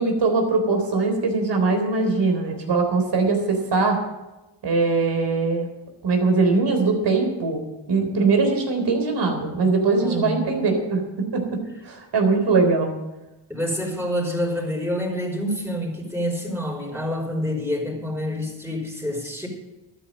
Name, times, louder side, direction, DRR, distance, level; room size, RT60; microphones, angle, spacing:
voice 1, 0.0-4.0 4.6-5.7 6.0-11.0 11.3-12.9, right 3 dB, 60° right, 4 dB, 3.9 m, -21 dB
voice 2, 10.0-10.5 13.5-19.5, equal, 5° right, -1 dB, 5.5 m, -27 dB
12.5 x 9.8 x 7.4 m, 1.0 s
cardioid pair, 75°, 47 cm